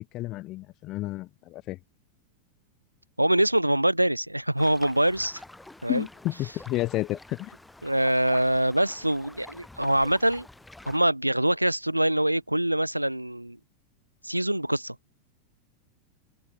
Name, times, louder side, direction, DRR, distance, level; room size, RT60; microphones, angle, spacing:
voice 1, 0.0-1.8 5.9-7.5, left 17 dB, 35° left, 2.6 m, -31 dB
voice 2, 3.2-5.4 5.8-6.1 7.8-10.5 10.9-13.6 14.2-15.0, right 1 dB, 85° right, 0.7 m, -24 dB
sound 1, 4.6-11.0, left 2 dB, 5° left, 7.0 m, -48 dB
figure-of-eight pair, 90°, 0 cm